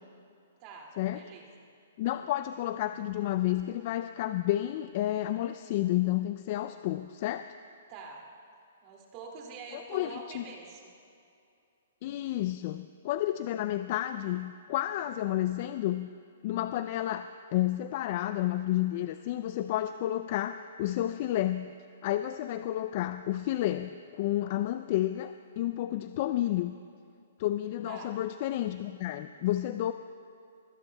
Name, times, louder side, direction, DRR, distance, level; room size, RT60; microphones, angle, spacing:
voice 1, 0.6-1.5 2.0-2.3 7.9-8.3 8.8-10.9 26.0-26.5 27.8-28.2 29.4-29.7, right 4 dB, 35° right, 0 dB, 2.3 m, -46 dB
voice 2, 2.0-7.5 9.7-10.4 12.0-16.1 16.4-21.7 22.0-26.7 27.4-29.9, left 14 dB, 45° left, 11 dB, 0.3 m, -31 dB
22.5 x 16.5 x 2.2 m, 2.5 s
hypercardioid pair, 140°, 0 cm